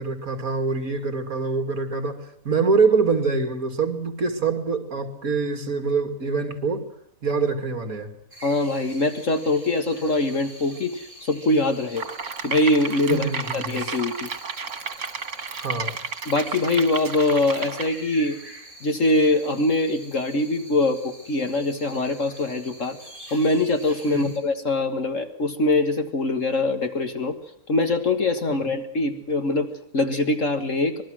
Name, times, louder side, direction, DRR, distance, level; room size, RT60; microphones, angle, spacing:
voice 1, 0.0-6.9 7.2-8.1 13.1-13.8 15.6-16.0 24.1-24.4 28.6-28.7, right 4 dB, 65° right, 3.0 m, -25 dB
sound 1, 8.3-24.4, right 1 dB, 35° right, 8.2 m, -45 dB
voice 2, 8.4-12.0 12.4-13.3 13.5-14.3 16.3-18.4 18.8-23.0 23.3-27.4 27.7-31.0, left 2 dB, 55° left, 2.1 m, -23 dB
sound 2, 11.9-17.9, right 5 dB, 90° right, 2.4 m, -32 dB
26.0 x 20.5 x 6.3 m
omnidirectional pair, 1.6 m